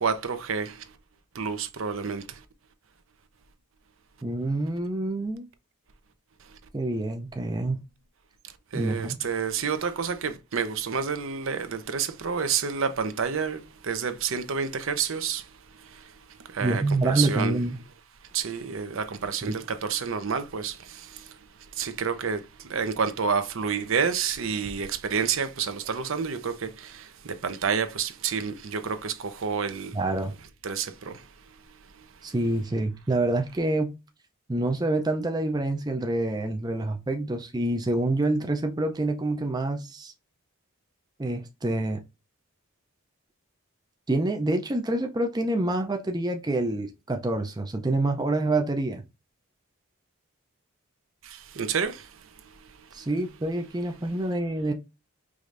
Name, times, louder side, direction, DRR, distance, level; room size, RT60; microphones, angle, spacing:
voice 1, 0.0-0.9 1.3-2.4 6.4-6.6 8.4-17.6 18.3-30.0 30.6-32.3 51.2-53.1, right 6 dB, 60° right, 0.6 m, -30 dB
voice 2, 4.2-5.5 6.7-7.8 8.7-9.2 16.6-17.8 19.4-19.5 29.9-30.4 32.2-33.9 34.5-40.1 41.2-42.0 44.1-49.0 52.9-54.7, right 2 dB, 20° right, 0.4 m, -27 dB
4.9 x 3.2 x 2.5 m
head